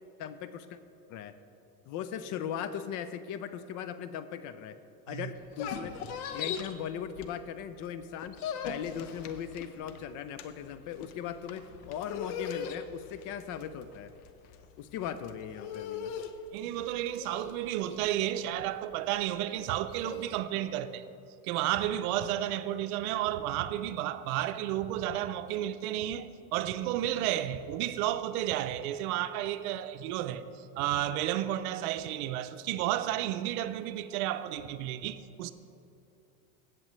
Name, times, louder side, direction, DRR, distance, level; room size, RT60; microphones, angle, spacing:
voice 1, 0.2-0.8 1.1-1.3 1.9-4.8 5.1-5.9 6.3-8.4 8.6-14.1 14.8-16.2, left 9 dB, 45° left, 0.5 m, -38 dB
sound 1, 5.4-7.7 8.0-20.3, left 7 dB, 75° left, 0.9 m, -40 dB
voice 2, 16.5-21.0 21.4-30.4 30.8-35.5, right 12 dB, 70° right, 0.7 m, -32 dB
16.5 x 7.6 x 3.2 m
supercardioid pair, 120°, 45 cm